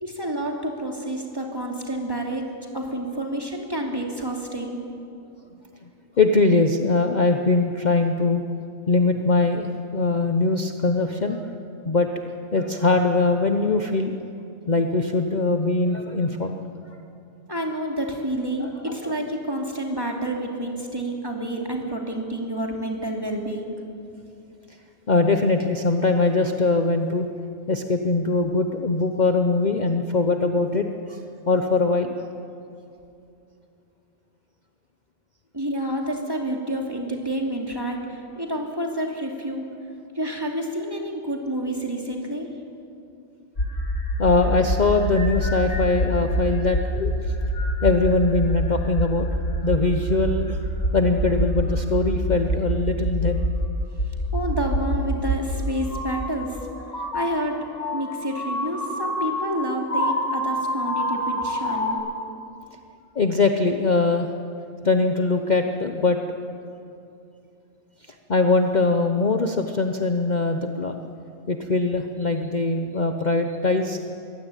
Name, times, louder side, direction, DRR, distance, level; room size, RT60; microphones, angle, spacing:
voice 1, 0.0-2.4 2.7-4.8 17.5-23.7 35.5-39.7 40.1-42.5 54.3-56.6 57.1-57.6 57.9-62.0, right 1 dB, 15° right, 1 dB, 2.8 m, -29 dB
voice 2, 6.2-8.4 8.9-11.4 11.8-12.1 12.5-14.1 14.7-16.5 18.6-19.0 25.1-27.3 27.7-31.2 31.5-32.1 44.2-47.3 47.8-49.3 49.6-50.6 50.9-53.4 56.6-57.3 63.1-64.3 64.8-66.2 68.3-71.0 71.5-74.1, left 3 dB, 40° left, 5 dB, 1.0 m, -22 dB
sound 1, 43.6-55.4 55.8-61.9, equal, 70° left, 4.1 m, -26 dB
23.0 x 16.5 x 9.2 m, 2.6 s
omnidirectional pair, 1.3 m